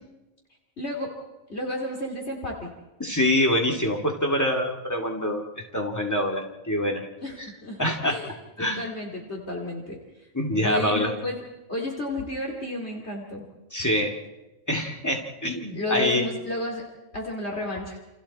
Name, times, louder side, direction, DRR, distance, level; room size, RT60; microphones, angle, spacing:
voice 1, 0.8-1.1 1.5-2.7 7.2-8.3 8.6-10.0 10.5-11.4 11.7-13.4 15.7-16.8 17.1-18.0, left 2 dB, 50° left, 0 dB, 3.1 m, -32 dB
voice 2, 3.0-7.0 7.4-7.5 7.8-8.8 10.3-11.1 13.7-14.1 14.7-16.2, left 1 dB, 10° left, 0 dB, 2.6 m, -25 dB
29.0 x 27.5 x 4.3 m, 1.1 s
omnidirectional pair, 1.4 m